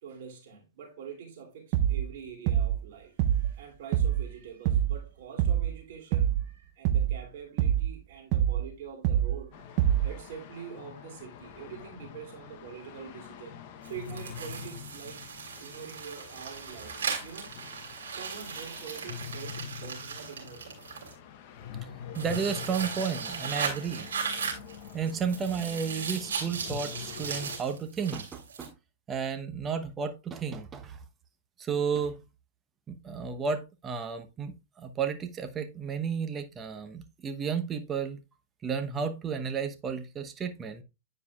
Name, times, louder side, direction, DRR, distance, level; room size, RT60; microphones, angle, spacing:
voice 1, 0.0-9.7 10.0-13.6 13.8-15.2 15.6-16.9 17.2-17.6 18.1-20.8, right 7 dB, 60° right, 2.7 m, -45 dB
sound 1, 1.7-2.1 2.5-2.8 3.2-3.6 3.9-4.3 4.7-5.0 5.4-5.8 6.1-6.5 6.8-7.2 7.6-8.0 8.3-8.7 9.0-9.4 9.8-10.2, right 10 dB, 45° right, 0.6 m, -25 dB
sound 2, 9.5-27.6, left 8 dB, 50° left, 0.8 m, -45 dB
sound 3, 13.8-21.1 22.1-28.7, right 6 dB, 85° right, 2.7 m, -37 dB
voice 2, 22.1-24.6 24.9-28.7 29.1-31.0 31.6-32.2 32.9-38.2 38.6-40.8, right 6 dB, 20° right, 0.9 m, -33 dB
9.5 x 4.9 x 2.4 m
hypercardioid pair, 125°, 0 cm